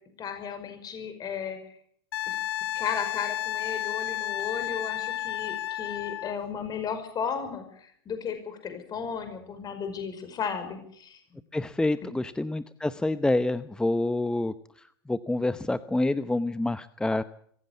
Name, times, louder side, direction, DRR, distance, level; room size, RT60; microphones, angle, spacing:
voice 1, 0.2-1.6 2.3-2.4 2.7-11.2, left 7 dB, 30° left, 8 dB, 5.3 m, -34 dB
Wind instrument woodwind instrument, 2.1-6.4 9.0-9.2, left 13 dB, 80° left, 0.8 m, -32 dB
voice 2, 11.5-17.2, left 2 dB, 5° left, 13 dB, 0.8 m, -27 dB
23.0 x 16.0 x 8.3 m, 0.65 s
hypercardioid pair, 105°, 13 cm